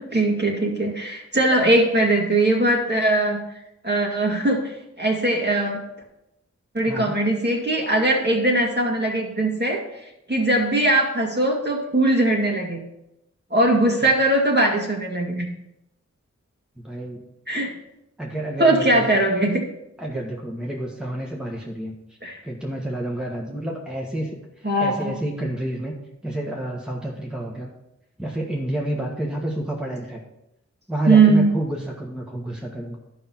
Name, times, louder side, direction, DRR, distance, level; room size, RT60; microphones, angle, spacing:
voice 1, 0.0-3.4 3.8-5.8 6.7-9.8 10.3-12.8 13.5-15.5 17.5-17.7 18.6-19.6 22.2-22.4 24.6-25.1 31.1-31.5, right 2 dB, 35° right, -1 dB, 2.2 m, -20 dB
voice 2, 16.8-17.2 18.2-19.1 20.0-21.9 22.4-24.4 24.8-25.9 26.2-27.7 28.2-30.2 30.9-33.0, right 1 dB, 5° right, -2 dB, 1.5 m, -29 dB
11.5 x 5.5 x 4.4 m, 0.86 s
wide cardioid pair, 50°, 29 cm